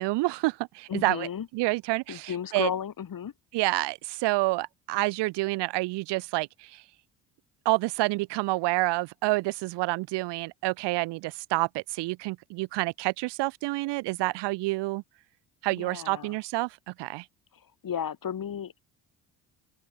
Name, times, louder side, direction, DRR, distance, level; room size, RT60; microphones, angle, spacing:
voice 1, 0.0-1.3 1.5-2.7 3.5-6.8 7.6-15.0 15.6-17.2, right 21 dB, 70° right, 0.8 m, -28 dB
voice 2, 0.9-1.5 2.1-3.3 15.7-16.4 17.5-18.9, left 8 dB, 50° left, 7.2 m, -34 dB
open air
supercardioid pair, 65°, 43 cm